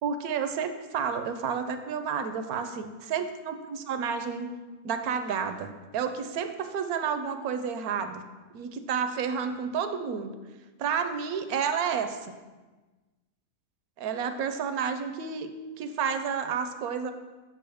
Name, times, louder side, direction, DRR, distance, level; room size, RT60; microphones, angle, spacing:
voice 1, 0.0-4.5 4.8-8.2 8.5-10.3 10.8-12.3 14.0-15.5 15.8-17.1, right 6 dB, 80° right, 8 dB, 1.1 m, -30 dB
7.8 x 6.0 x 3.4 m, 1.2 s
omnidirectional pair, 1.6 m